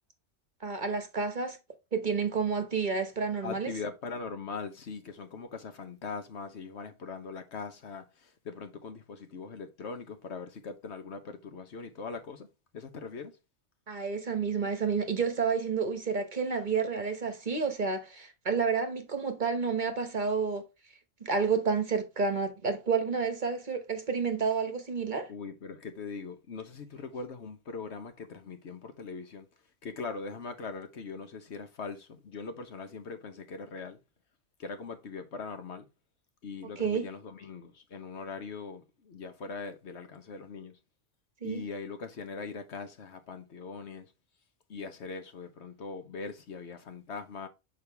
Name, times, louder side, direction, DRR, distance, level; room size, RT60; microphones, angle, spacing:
voice 1, 0.6-1.6 1.9-3.7 13.9-20.6 21.2-25.3 36.8-37.1 41.4-41.6, right 5 dB, 40° right, 1.1 m, -30 dB
voice 2, 3.4-12.5 12.7-13.4 25.3-29.5 29.8-34.0 34.6-35.9 36.4-40.8 41.4-44.1 44.7-47.5, left 4 dB, 65° left, 1.2 m, -41 dB
6.5 x 4.8 x 3.4 m
omnidirectional pair, 1.3 m